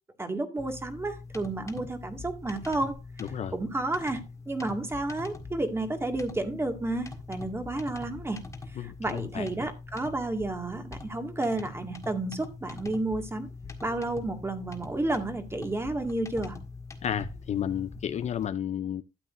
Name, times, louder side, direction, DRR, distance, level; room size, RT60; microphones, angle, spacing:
voice 1, 0.2-3.0 3.5-4.2 4.5-8.4 8.8-13.5 13.8-16.6, right 2 dB, 15° right, 2.0 m, -31 dB
sound 1, 0.6-18.5, left 3 dB, 20° left, 1.8 m, -43 dB
voice 2, 8.8-9.5 17.0-19.0, left 9 dB, 40° left, 0.5 m, -32 dB
12.5 x 8.4 x 2.6 m
cardioid pair, 110°, 17 cm